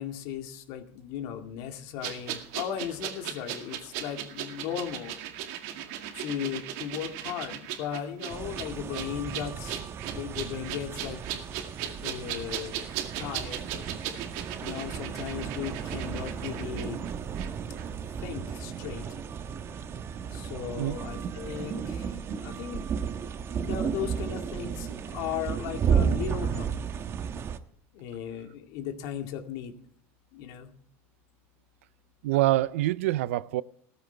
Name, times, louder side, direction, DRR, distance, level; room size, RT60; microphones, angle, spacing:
voice 1, 0.0-5.1 6.1-11.2 12.0-12.7 13.2-13.7 14.6-17.0 18.2-19.1 20.3-22.1 22.4-23.0 23.5-26.7 27.9-29.9 30.3-30.7, left 9 dB, 70° left, 2.1 m, -36 dB
sound 1, 2.0-17.5 17.8-17.9, right 10 dB, 75° right, 2.1 m, -38 dB
sound 2, 8.3-27.6, right 7 dB, 40° right, 1.2 m, -33 dB
voice 2, 32.2-33.6, right 16 dB, 90° right, 0.5 m, -25 dB
16.5 x 14.0 x 3.4 m
supercardioid pair, 110°, 7 cm